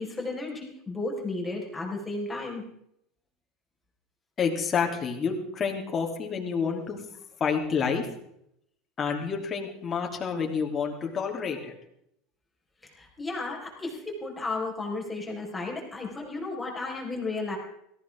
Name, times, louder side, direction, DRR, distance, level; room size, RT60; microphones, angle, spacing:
voice 1, 0.0-2.6 13.0-17.6, left 3 dB, 15° left, -1 dB, 4.9 m, -33 dB
voice 2, 4.4-7.0 7.4-8.1 9.0-11.7, left 6 dB, 30° left, 1 dB, 3.2 m, -29 dB
18.0 x 15.0 x 3.7 m, 0.74 s
supercardioid pair, 105°, 0 cm